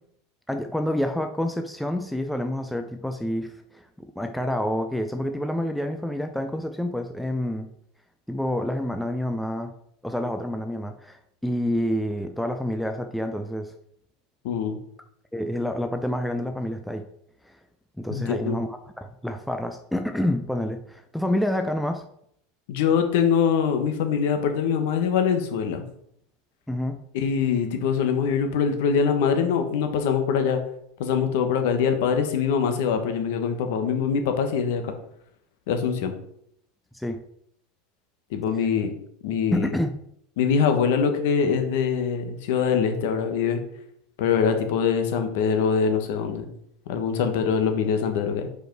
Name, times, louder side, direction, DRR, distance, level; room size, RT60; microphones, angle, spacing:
voice 1, 0.5-7.7 8.3-9.7 10.0-13.7 15.3-17.0 18.0-22.0 26.7-27.0 36.9-37.2 39.5-39.9, left 1 dB, ahead, 6 dB, 0.3 m, -28 dB
voice 2, 14.4-14.8 18.1-18.6 22.7-25.8 27.1-30.6 31.0-34.9 35.7-36.1 38.3-38.9 39.2-39.7 40.4-43.6 44.2-46.5 46.9-48.5, left 6 dB, 60° left, 6 dB, 1.1 m, -23 dB
5.0 x 4.8 x 4.5 m, 0.71 s
supercardioid pair, 170°, 0 cm